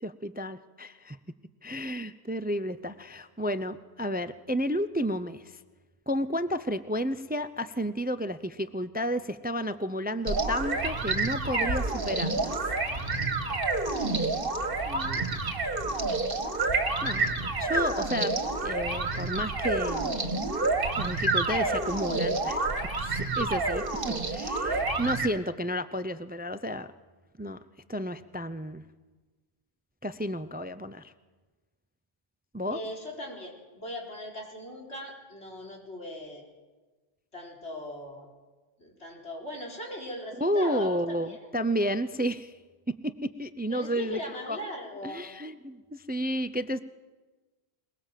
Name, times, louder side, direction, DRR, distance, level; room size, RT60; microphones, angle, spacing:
voice 1, 0.0-1.2 1.6-5.5 6.1-12.6 14.8-15.2 17.0-20.1 21.0-22.6 23.0-26.9 27.4-27.6 27.9-28.8 30.0-31.1 32.5-32.8 40.4-42.5 43.0-43.1 43.4-44.6 45.0-46.8, equal, 10° right, 12 dB, 0.5 m, -32 dB
sound 1, 10.3-25.3, right 3 dB, 55° right, 2.0 m, -29 dB
voice 2, 32.7-36.4 37.3-38.3 38.8-41.5 43.7-45.3, equal, 85° left, -1 dB, 4.8 m, -39 dB
22.5 x 21.5 x 7.5 m, 1.3 s
omnidirectional pair, 1.1 m